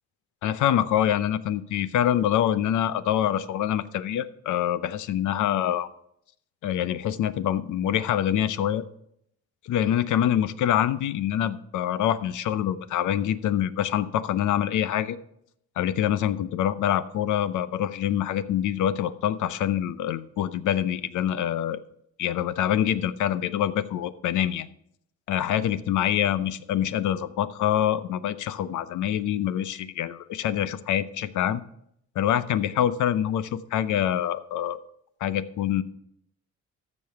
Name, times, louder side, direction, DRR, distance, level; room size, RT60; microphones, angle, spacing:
voice 1, 0.4-5.9 6.6-8.8 9.6-15.2 15.8-21.8 22.2-24.7 25.3-31.6 32.2-34.8 35.2-35.8, left 10 dB, 75° left, 15 dB, 0.7 m, -25 dB
14.0 x 5.4 x 5.8 m, 0.74 s
cardioid pair, 90°, 30 cm